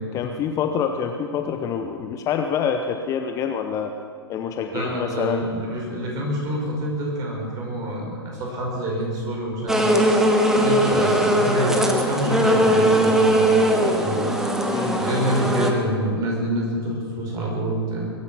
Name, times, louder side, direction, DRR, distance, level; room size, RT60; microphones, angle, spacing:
voice 1, 0.1-3.9 4.3-5.5 14.7-15.0, left 7 dB, 25° left, 6 dB, 0.8 m, -26 dB
voice 2, 4.7-10.0 10.4-14.3 14.8-18.1, right 1 dB, 25° right, -2 dB, 5.4 m, -27 dB
sound 1, 9.7-15.7, equal, 5° right, 1.4 m, -19 dB
22.5 x 9.7 x 6.3 m, 2.3 s
figure-of-eight pair, 110°, 13 cm